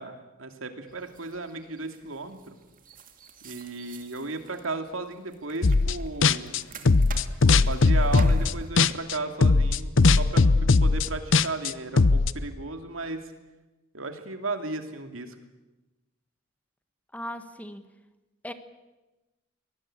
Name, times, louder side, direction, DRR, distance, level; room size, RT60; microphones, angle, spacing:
voice 1, 0.0-2.5 3.4-6.6 7.4-13.3 13.9-15.4, right 3 dB, 85° right, 6 dB, 2.7 m, -35 dB
sound 1, 0.9-8.9, right 1 dB, 45° right, 2.4 m, -43 dB
sound 2, 5.6-6.0 6.2-9.1 9.4-12.3, left 3 dB, 70° left, 0.8 m, -19 dB
voice 2, 17.1-17.9 18.4-18.5, equal, 10° left, 9 dB, 1.4 m, -37 dB
23.5 x 19.5 x 8.9 m, 1.1 s
head